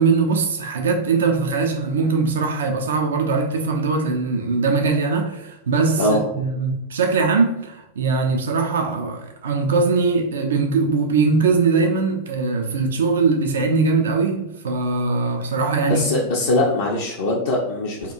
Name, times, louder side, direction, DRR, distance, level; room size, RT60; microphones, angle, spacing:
voice 1, 0.0-16.1, right 4 dB, 65° right, 0.3 m, -21 dB
voice 2, 15.9-18.1, left 2 dB, 55° left, 0.4 m, -21 dB
2.8 x 2.3 x 2.4 m
figure-of-eight pair, 90°, 0 cm